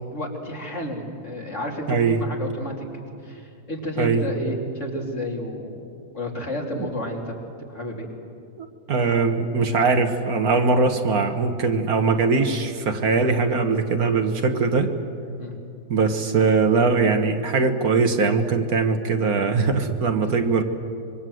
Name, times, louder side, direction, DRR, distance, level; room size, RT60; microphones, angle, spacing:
voice 1, 0.1-5.8 6.1-7.4 7.7-8.1 15.4-15.6 20.2-20.3, left 1 dB, 45° left, 0 dB, 3.4 m, -31 dB
voice 2, 1.9-2.2 4.0-4.2 6.8-6.9 8.6-14.9 15.9-20.6, right 4 dB, 65° right, 6 dB, 1.8 m, -21 dB
25.5 x 23.5 x 7.8 m, 2.5 s
omnidirectional pair, 1.7 m